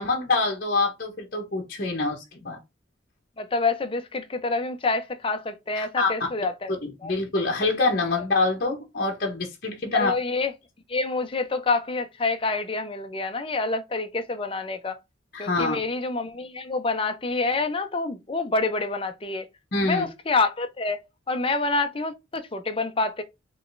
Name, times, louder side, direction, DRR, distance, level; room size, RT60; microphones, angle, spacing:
voice 1, 0.0-2.6 5.8-6.1 6.8-10.1 15.3-15.8 19.7-20.1, left 3 dB, 50° left, 0.9 m, -25 dB
voice 2, 3.4-6.7 7.0-7.1 9.9-10.5 10.9-15.0 15.4-19.5 19.9-23.2, left 3 dB, 30° left, 0.5 m, -27 dB
4.8 x 3.0 x 2.5 m
head